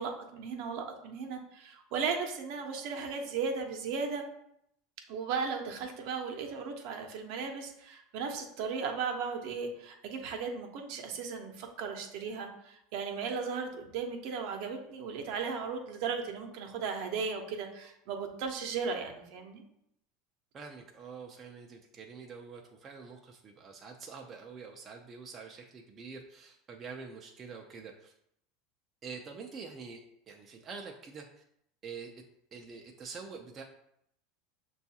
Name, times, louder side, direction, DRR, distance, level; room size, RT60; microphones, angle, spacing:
voice 1, 0.0-4.2 5.1-19.6, right 5 dB, 65° right, 4 dB, 0.7 m, -36 dB
voice 2, 20.5-28.1 29.0-31.3 31.8-32.1 32.5-33.6, right 5 dB, 30° right, 1 dB, 0.4 m, -46 dB
6.1 x 2.3 x 2.7 m, 0.75 s
supercardioid pair, 130°, 0 cm